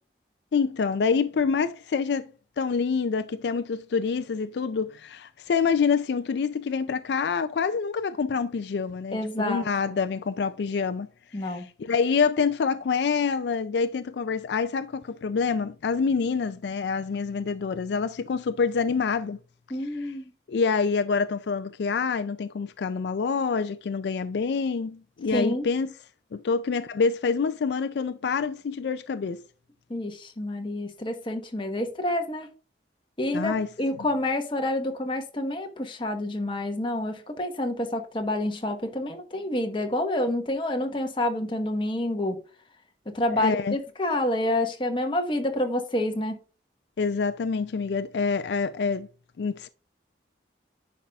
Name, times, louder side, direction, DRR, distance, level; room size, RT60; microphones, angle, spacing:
voice 1, 0.5-11.1 11.4-19.4 20.0-20.1 20.5-25.9 26.3-29.4 33.3-33.7 43.3-43.8 47.0-49.1 49.4-49.7, left 5 dB, 70° left, 0.4 m, -26 dB
voice 2, 9.1-9.7 11.3-11.7 19.7-20.3 25.3-25.7 29.9-32.5 33.2-42.4 43.1-46.3, left 1 dB, 30° left, 1.1 m, -28 dB
10.0 x 5.4 x 2.4 m
head